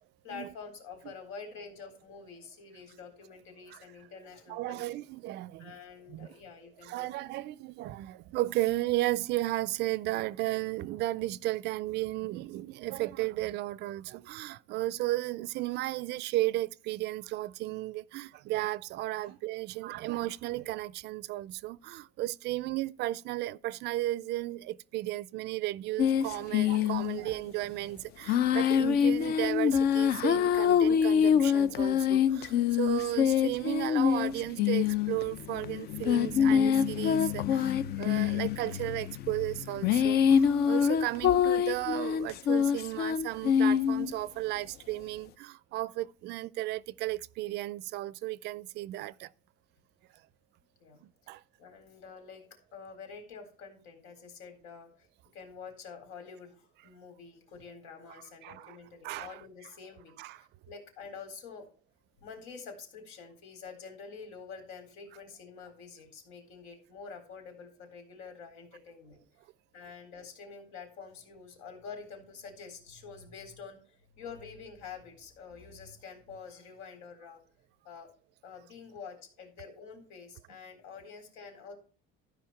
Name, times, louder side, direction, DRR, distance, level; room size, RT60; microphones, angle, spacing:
voice 1, 0.2-5.0 5.6-7.1 19.2-19.3 40.5-40.6 50.8-51.0 51.6-52.4 52.7-55.1 55.3-61.7 62.2-69.2 69.7-77.4 77.8-78.1 78.4-81.8, left 5 dB, 85° left, 4.1 m, -47 dB
voice 2, 4.5-5.8 6.1-6.3 6.8-49.3 51.0-51.4 58.4-58.8 59.0-59.4 60.2-60.4, right 17 dB, 55° right, 0.4 m, -34 dB
sound 1, 26.0-27.3 28.3-44.1, left 8 dB, 50° left, 0.6 m, -26 dB
13.0 x 5.3 x 5.8 m
cardioid pair, 155°, 21 cm